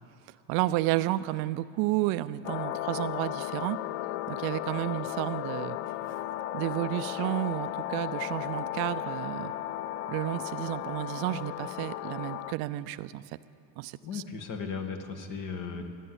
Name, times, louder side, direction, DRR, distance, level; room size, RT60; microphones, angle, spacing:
voice 1, 0.5-3.8 4.3-5.8 6.5-9.5 10.1-13.3 13.8-14.2, right 16 dB, 65° right, 15 dB, 0.5 m, -31 dB
sound 1, 2.4-12.5, left 13 dB, 85° left, 0.6 m, -35 dB
voice 2, 14.0-15.8, left 5 dB, 50° left, 5 dB, 1.9 m, -36 dB
15.5 x 10.0 x 8.0 m, 2.4 s
supercardioid pair, 100°, 41 cm